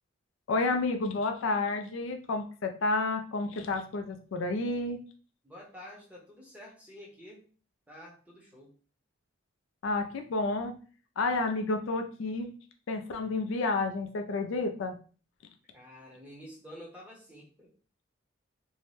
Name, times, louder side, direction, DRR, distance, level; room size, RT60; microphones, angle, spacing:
voice 1, 0.5-5.0 9.8-10.7 11.2-12.5 12.9-15.0, left 3 dB, 70° left, 6 dB, 0.4 m, -30 dB
voice 2, 5.4-7.5 7.9-8.7 15.7-17.7, equal, 5° right, -2 dB, 0.6 m, -49 dB
2.6 x 2.1 x 3.2 m, 0.40 s
head